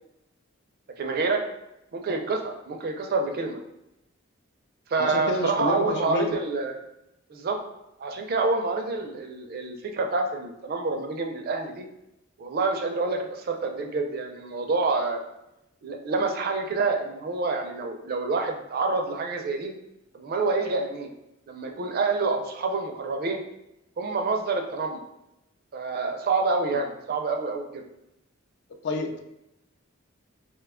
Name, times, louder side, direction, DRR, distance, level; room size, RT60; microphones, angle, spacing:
voice 1, 1.0-1.4 1.9-3.6 4.9-6.8 7.3-7.6 8.0-11.8 12.4-15.2 15.8-19.7 20.1-21.1 21.5-23.4 24.0-25.0 25.7-27.8, right 3 dB, 50° right, 4 dB, 0.4 m, -27 dB
voice 2, 5.0-6.3 28.8-29.2, left 2 dB, 55° left, 5 dB, 0.4 m, -28 dB
2.7 x 2.2 x 3.5 m, 0.87 s
head